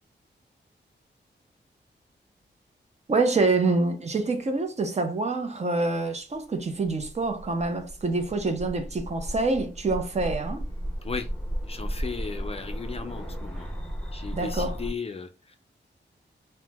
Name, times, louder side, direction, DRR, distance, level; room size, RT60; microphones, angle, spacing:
voice 1, 3.1-10.6 14.3-14.8, right 3 dB, 35° right, 0.5 m, -26 dB
sound 1, 6.7-14.9, equal, 5° left, 0.7 m, -35 dB
voice 2, 11.7-13.7 14.1-15.6, left 5 dB, 35° left, 0.4 m, -36 dB
2.8 x 2.1 x 3.3 m
wide cardioid pair, 120°, 19 cm